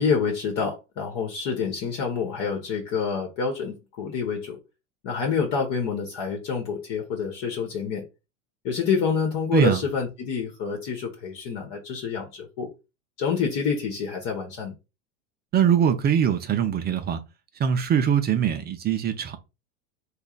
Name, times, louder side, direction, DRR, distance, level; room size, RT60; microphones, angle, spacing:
voice 1, 0.0-4.6 5.0-8.0 8.6-12.7 13.2-14.7, left 6 dB, 50° left, 1.2 m, -27 dB
voice 2, 9.5-9.8 15.5-17.2 17.6-19.4, right 8 dB, 25° right, 0.4 m, -22 dB
3.1 x 2.3 x 3.8 m
hypercardioid pair, 100°, 42 cm